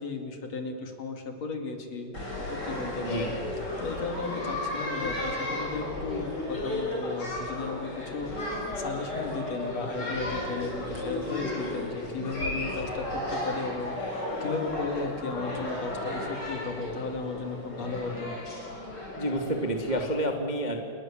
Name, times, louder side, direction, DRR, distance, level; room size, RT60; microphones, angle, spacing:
voice 1, 0.0-2.1 2.5-3.3 3.8-18.3, left 4 dB, 45° left, 4 dB, 3.2 m, -35 dB
sound 1, 2.1-20.0, left 1 dB, 25° left, 6.7 m, -34 dB
voice 2, 19.2-20.8, right 1 dB, 20° right, 3 dB, 1.2 m, -29 dB
30.0 x 22.0 x 7.5 m, 2.2 s
omnidirectional pair, 4.7 m